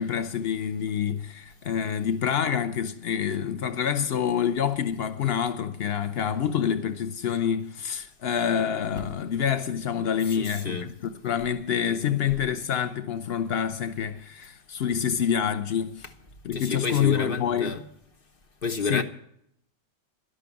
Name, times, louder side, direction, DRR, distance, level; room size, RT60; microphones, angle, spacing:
voice 1, 0.0-10.9 11.2-16.1 16.4-17.8 18.8-19.0, left 8 dB, 85° left, 0.5 m, -27 dB
voice 2, 10.3-10.9 16.5-17.8 18.6-19.0, left 4 dB, 40° left, 0.9 m, -29 dB
11.5 x 11.5 x 7.0 m
omnidirectional pair, 2.0 m